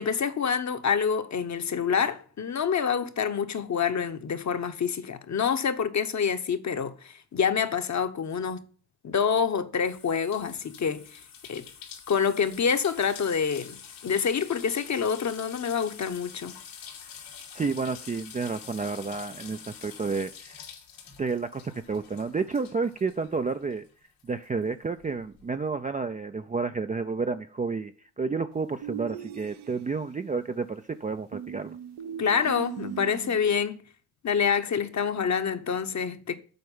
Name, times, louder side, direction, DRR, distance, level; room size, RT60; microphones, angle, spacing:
voice 1, 0.0-8.6 9.0-11.2 11.5-11.6 12.1-16.6 32.2-33.8 34.2-36.4, left 6 dB, 40° left, 1.0 m, -27 dB
sound 1, 9.8-23.9 24.2-25.4, left 7 dB, 85° left, 2.9 m, -46 dB
voice 2, 17.5-20.6 21.2-23.9 24.2-31.8, right 4 dB, 20° right, 0.4 m, -30 dB
sound 2, 28.8-30.1 31.3-33.5, right 9 dB, 65° right, 0.8 m, -39 dB
7.9 x 4.5 x 5.3 m
supercardioid pair, 60°, 45 cm